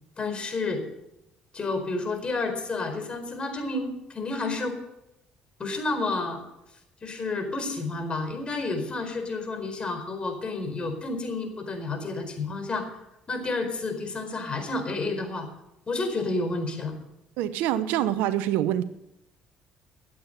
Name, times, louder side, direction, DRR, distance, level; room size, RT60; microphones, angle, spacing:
voice 1, 0.2-0.8 1.5-4.8 5.6-6.4 7.0-12.8 13.3-15.5 15.9-16.9, left 3 dB, 35° left, 5 dB, 4.5 m, -30 dB
voice 2, 17.4-18.8, right 12 dB, 85° right, 14 dB, 0.8 m, -25 dB
13.5 x 8.5 x 6.7 m, 0.85 s
supercardioid pair, 70°, 3 cm